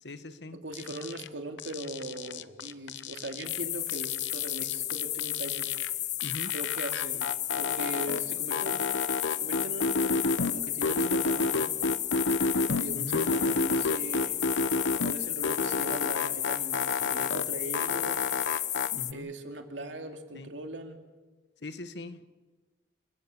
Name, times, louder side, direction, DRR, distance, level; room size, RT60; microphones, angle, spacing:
voice 1, 0.0-0.6 6.2-6.5 12.9-13.2 18.9-19.3 20.3-20.5 21.6-22.3, left 2 dB, 70° left, 11 dB, 1.3 m, -41 dB
voice 2, 0.5-5.7 6.5-7.3 7.6-8.8 9.3-11.7 12.7-14.4 15.0-18.2 19.1-21.0, right 1 dB, 85° right, 5 dB, 2.6 m, -40 dB
sound 1, 0.7-1.3 1.6-3.6 3.9-5.9 6.2-8.2 8.5-10.5 10.8-12.8 13.1-15.1 15.4-17.4 17.7-18.9, left 3 dB, 85° left, 0.8 m, -30 dB
sound 2, 3.4-19.1, left 13 dB, 40° left, 0.7 m, -33 dB
29.5 x 17.0 x 7.1 m, 1.3 s
head